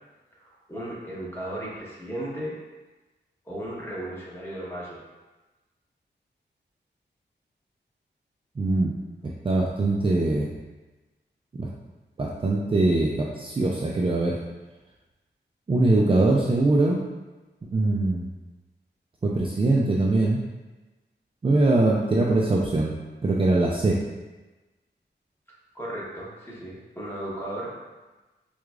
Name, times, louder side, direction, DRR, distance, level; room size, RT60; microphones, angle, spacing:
voice 1, 0.4-2.5 3.4-5.0 25.7-27.8, right 1 dB, 10° left, -7 dB, 1.0 m, -35 dB
voice 2, 8.6-8.9 9.2-10.5 11.6-11.7 12.2-14.4 15.7-17.0 17.7-18.3 19.2-20.4 21.4-22.9 23.2-24.0, right 2 dB, 30° right, -3 dB, 0.3 m, -22 dB
4.6 x 2.3 x 2.4 m, 1.2 s
wide cardioid pair, 100°, 19 cm